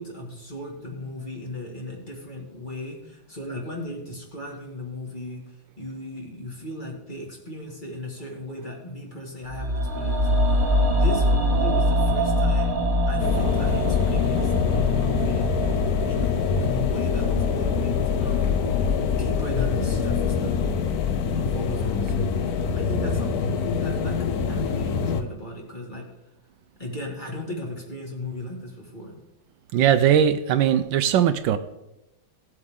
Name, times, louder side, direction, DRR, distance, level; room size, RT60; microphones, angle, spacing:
voice 1, 0.0-10.6 10.8-12.8 13.1-15.5 16.0-18.5 19.0-20.8 21.4-24.2 24.5-26.1 26.8-29.1, left 1 dB, 25° left, -1 dB, 2.1 m, -36 dB
sound 1, 9.5-19.6 19.9-20.0, equal, 25° right, 2.0 m, -25 dB
sound 2, 13.2-25.2, left 6 dB, 60° left, 1.1 m, -24 dB
voice 2, 29.7-31.6, right 9 dB, 75° right, 11 dB, 1.3 m, -19 dB
16.5 x 7.9 x 3.7 m, 0.92 s
omnidirectional pair, 2.1 m